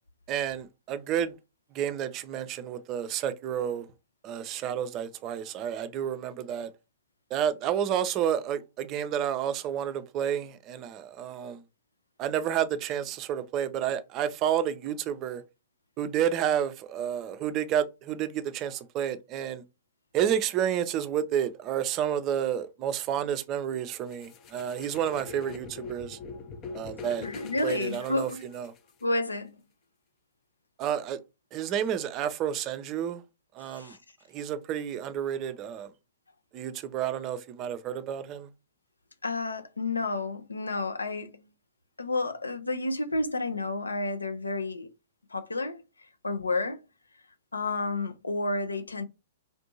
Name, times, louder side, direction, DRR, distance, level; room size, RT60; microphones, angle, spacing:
voice 1, 0.3-1.3 1.7-3.9 4.2-6.7 7.3-11.6 12.2-15.4 16.0-19.6 20.1-26.2 26.7-27.3 27.6-28.7 30.8-31.2 31.5-33.2 33.5-34.0 34.3-35.9 36.5-38.5, right 9 dB, 35° right, 0.5 m, -30 dB
sound 1, 24.1-29.0, left 4 dB, 30° left, 0.6 m, -43 dB
voice 2, 27.2-28.4 29.0-29.6 33.7-34.0 39.2-41.5 42.0-44.9 45.3-46.8 47.5-49.0, left 2 dB, 80° left, 0.5 m, -31 dB
3.5 x 2.6 x 2.7 m
figure-of-eight pair, 105°, 0 cm